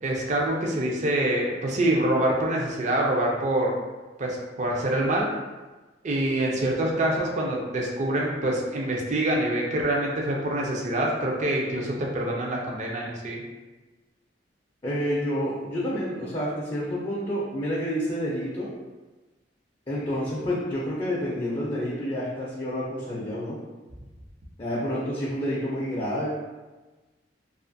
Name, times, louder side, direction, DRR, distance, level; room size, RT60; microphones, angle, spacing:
voice 1, 0.0-3.7 4.2-5.3 6.0-13.4, right 1 dB, 40° right, -1 dB, 0.4 m, -25 dB
voice 2, 14.8-18.7 19.9-23.6 24.6-26.3, equal, 25° left, -6 dB, 0.4 m, -29 dB
2.5 x 2.4 x 2.5 m, 1.2 s
head